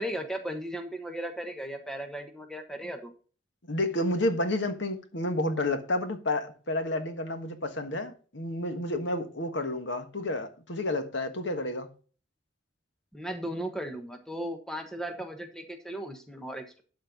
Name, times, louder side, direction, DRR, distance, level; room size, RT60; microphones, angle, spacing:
voice 1, 0.0-3.1 13.1-16.8, right 1 dB, 5° left, 1.2 m, -36 dB
voice 2, 3.7-11.9, left 1 dB, 70° left, 1.5 m, -30 dB
12.0 x 4.4 x 5.3 m
head